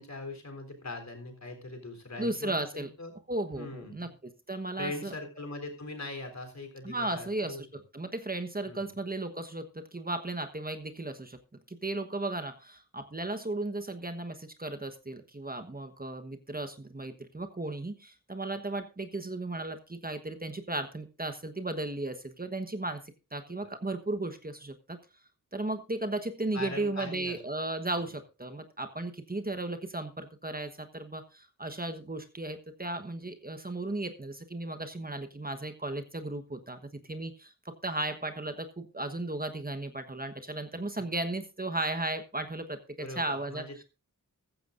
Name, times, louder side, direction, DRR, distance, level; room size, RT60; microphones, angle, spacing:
voice 1, 0.0-3.1 3.5-4.1 4.8-7.6 8.7-8.9 23.6-23.7 26.5-27.4 27.9-28.0 43.0-43.8, left 2 dB, 50° left, 5 dB, 3.8 m, -41 dB
voice 2, 2.2-2.9 3.3-4.1 4.5-5.1 6.8-7.5 7.9-9.6 9.9-11.1 11.8-12.5 13.1-14.3 14.6-17.9 18.3-19.7 20.0-23.0 23.3-24.7 25.5-28.1 28.4-30.1 30.4-30.7 31.1-31.2 31.6-36.8 37.1-37.3 37.8-38.5 38.9-42.6 43.2-43.6, right 2 dB, 25° right, 7 dB, 1.3 m, -35 dB
14.5 x 14.0 x 2.6 m, 0.29 s
wide cardioid pair, 70°, 35 cm